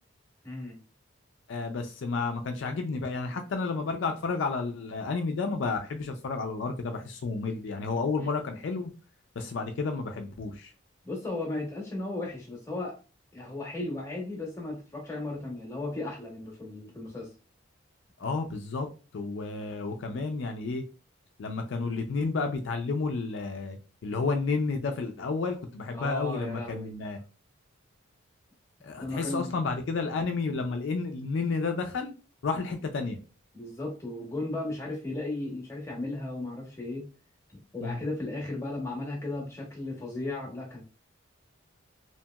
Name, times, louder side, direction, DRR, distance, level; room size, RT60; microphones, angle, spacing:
voice 1, 0.4-0.8 8.2-8.3 11.0-13.0 13.3-17.3 25.9-26.9 29.0-29.5 33.5-37.1 37.5-40.8, left 2 dB, 15° left, -1 dB, 0.8 m, -35 dB
voice 2, 1.5-8.9 9.4-10.7 18.2-18.9 19.1-20.8 21.4-23.8 24.0-27.2 28.8-32.1 32.4-33.2 37.8-38.0, left 4 dB, 65° left, 5 dB, 0.4 m, -31 dB
2.8 x 2.8 x 2.2 m, 0.33 s
head